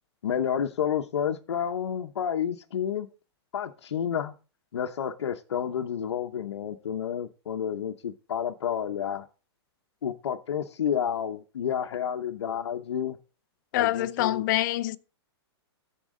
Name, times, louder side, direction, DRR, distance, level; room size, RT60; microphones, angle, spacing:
voice 1, 0.2-3.1 3.5-4.3 4.7-9.3 10.0-13.2 13.7-14.4, left 8 dB, 90° left, 0.8 m, -30 dB
voice 2, 13.7-15.0, left 15 dB, 45° left, 0.5 m, -25 dB
13.5 x 4.7 x 3.7 m
hypercardioid pair, 145°, 14 cm